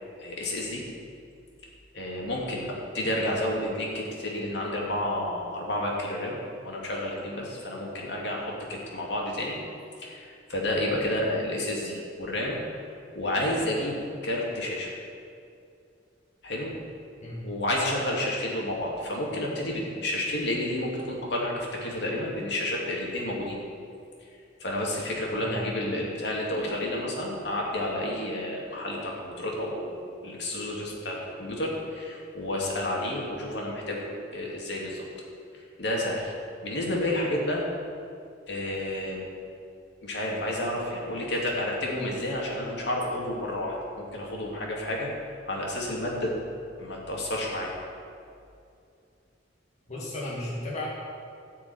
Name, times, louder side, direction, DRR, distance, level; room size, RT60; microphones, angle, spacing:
voice 1, 0.2-0.8 1.9-6.4 6.6-9.5 10.0-12.6 13.1-14.0 14.2-15.0 16.4-16.7 17.4-23.6 24.6-30.0 30.2-35.1 35.8-36.3 36.6-37.6 38.5-39.2 40.0-45.1 45.5-46.4 46.8-47.7, left 1 dB, 60° left, -3 dB, 2.6 m, -30 dB
voice 2, 49.9-50.9, left 1 dB, 35° left, -6 dB, 2.0 m, -34 dB
14.0 x 5.1 x 9.2 m, 2.5 s
head